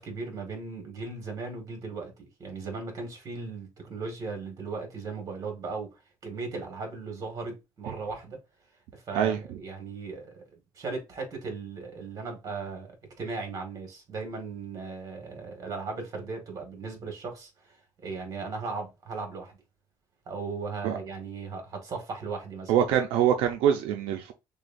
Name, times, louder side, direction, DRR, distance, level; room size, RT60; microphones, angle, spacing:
voice 1, 0.0-8.4 8.9-12.9 13.2-19.6 20.2-22.7, right 4 dB, 40° right, 1.7 m, -37 dB
voice 2, 22.7-24.3, right 9 dB, 85° right, 0.5 m, -24 dB
6.4 x 2.3 x 2.5 m
cardioid pair, 140°, 9 cm